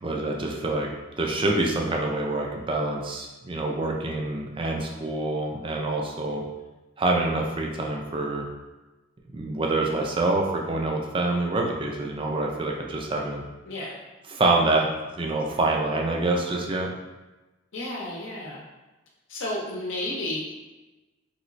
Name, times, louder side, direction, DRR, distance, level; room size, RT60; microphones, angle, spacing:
voice 1, 0.0-0.9 1.2-6.4 7.0-8.5 9.3-13.4 14.3-14.9 15.2-16.9, right 2 dB, 25° right, 0 dB, 0.4 m, -26 dB
voice 2, 13.7-14.0 17.7-18.6 19.3-20.4, left 1 dB, 75° left, -3 dB, 0.7 m, -32 dB
3.1 x 2.9 x 2.5 m, 1.1 s
head